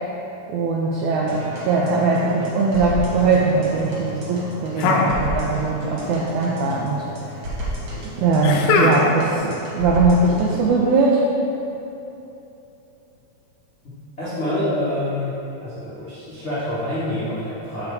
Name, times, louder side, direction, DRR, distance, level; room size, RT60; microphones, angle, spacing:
voice 1, 0.5-7.4 8.2-11.3, right 3 dB, 80° right, -3 dB, 1.7 m, -20 dB
sound 1, 1.3-10.7, right 1 dB, 55° right, 1.5 m, -32 dB
sound 2, 4.8-5.8 6.0-6.8 8.4-9.4, left 3 dB, 85° left, 1.7 m, -21 dB
voice 2, 14.2-15.3 15.6-17.9, left 1 dB, 55° left, -13 dB, 0.7 m, -26 dB
7.1 x 5.3 x 4.0 m, 2.9 s
omnidirectional pair, 4.1 m